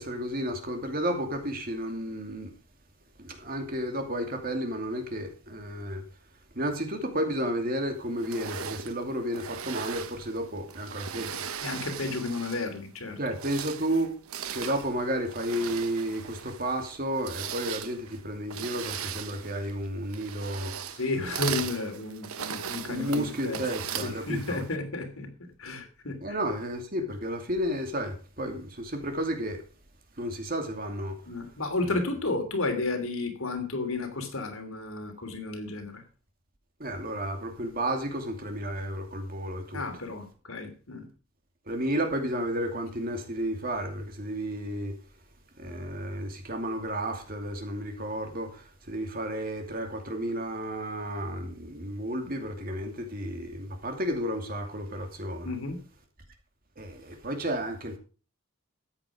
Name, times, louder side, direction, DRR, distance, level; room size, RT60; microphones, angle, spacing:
voice 1, 0.0-2.5 3.2-6.0 6.5-11.4 13.2-14.1 14.5-21.0 21.5-21.6 22.8-24.6 26.2-29.6 30.2-31.1 36.8-39.8 41.7-44.9 45.6-55.5 56.8-58.0, equal, 40° right, 2.6 m, -32 dB
sound 1, 8.2-12.8 13.2-24.8, right 8 dB, 85° right, 1.0 m, -38 dB
voice 2, 11.6-13.2 20.9-23.7 24.0-25.3 25.6-26.4 31.3-36.0 39.7-41.1 55.4-55.8, left 3 dB, 75° left, 3.1 m, -32 dB
13.5 x 8.6 x 4.9 m
head